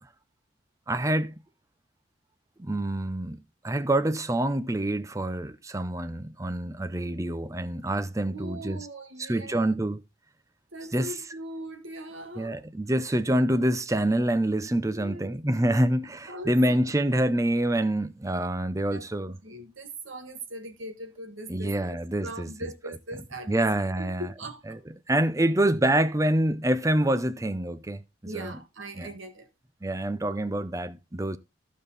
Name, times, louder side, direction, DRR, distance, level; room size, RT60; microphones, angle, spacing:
voice 1, 0.9-1.3 2.6-3.4 3.6-8.9 9.2-10.0 10.9-11.1 12.4-19.4 21.5-22.5 23.5-24.3 24.7-24.8 25.1-28.0 28.3-28.6 29.0-29.1 29.8-31.4, right 1 dB, 15° right, 0.5 m, -26 dB
voice 2, 8.3-9.7 10.7-12.6 14.9-15.3 16.3-16.6 18.9-19.0 19.4-23.7 23.9-24.8 28.2-29.5, right 1 dB, 80° right, 1.9 m, -40 dB
14.5 x 5.2 x 4.1 m
head